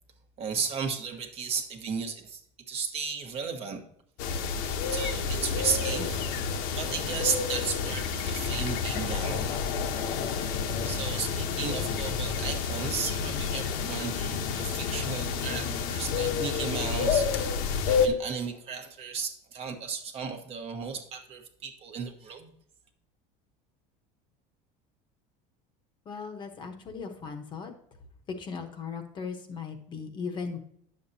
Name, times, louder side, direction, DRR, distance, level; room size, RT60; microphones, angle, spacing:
voice 1, 0.4-2.4 2.7-3.8 4.9-9.5 10.8-22.5, right 6 dB, 35° right, 5 dB, 1.1 m, -34 dB
sound 1, 4.2-18.1, left 6 dB, 60° left, 1.0 m, -29 dB
voice 2, 26.1-27.7 28.4-30.6, left 5 dB, 25° left, 5 dB, 1.0 m, -38 dB
10.0 x 7.2 x 2.7 m, 0.68 s
cardioid pair, 165°, 18 cm